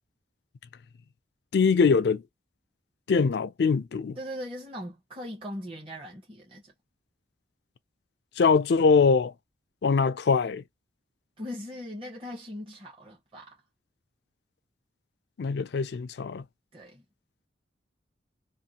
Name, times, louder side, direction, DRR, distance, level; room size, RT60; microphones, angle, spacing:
voice 1, 1.5-2.2 3.1-4.2 8.4-9.3 9.8-10.6 15.4-16.4, left 5 dB, 60° left, 0.3 m, -22 dB
voice 2, 4.2-6.7 11.4-13.6 16.7-17.0, equal, 30° right, 0.8 m, -39 dB
2.6 x 2.6 x 2.7 m
head